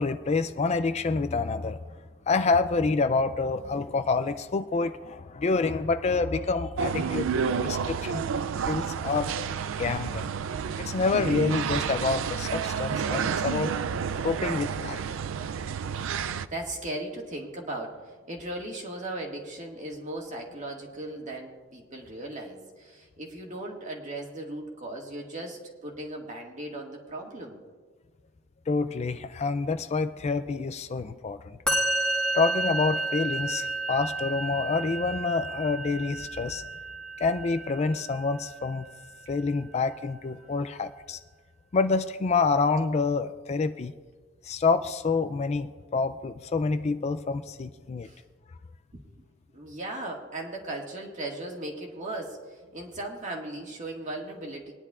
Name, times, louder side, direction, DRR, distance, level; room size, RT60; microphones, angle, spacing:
voice 1, 0.0-1.8 2.3-8.2 8.7-9.3 9.8-10.2 10.8-15.1 28.7-31.6 32.3-36.6 37.2-38.9 39.3-41.2 41.7-43.9 44.4-48.1, left 4 dB, 35° left, 10 dB, 0.4 m, -27 dB
sound 1, 6.8-16.5, right 6 dB, 80° right, 0.4 m, -30 dB
voice 2, 16.2-18.0 18.3-27.6 48.0-48.2 48.9-49.3 49.5-54.7, right 1 dB, 40° right, 0 dB, 1.8 m, -37 dB
Musical instrument, 31.7-38.9, right 2 dB, 5° left, 1.4 m, -31 dB
22.0 x 10.0 x 2.4 m, 1.5 s
head